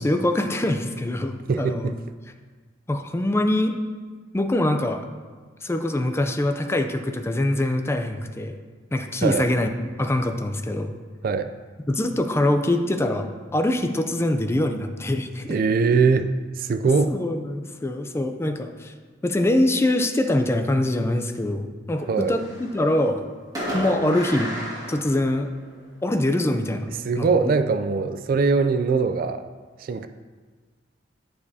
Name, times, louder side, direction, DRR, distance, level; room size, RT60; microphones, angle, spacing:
voice 1, 0.0-1.9 2.9-3.7 4.3-5.0 5.6-8.6 8.9-10.9 11.9-15.6 17.1-18.9 19.2-23.2 23.7-24.5 24.9-25.5 26.0-26.9 27.2-27.3, left 1 dB, 15° left, 6 dB, 0.4 m, -24 dB
voice 2, 1.5-2.0 9.2-9.5 11.2-11.5 15.5-17.1 22.1-22.4 27.0-29.4 29.8-30.1, right 4 dB, 50° right, 9 dB, 0.3 m, -22 dB
Fireworks, 21.9-22.9 23.5-25.8, equal, 20° right, 1.9 m, -32 dB
9.6 x 6.7 x 2.7 m, 1.5 s
head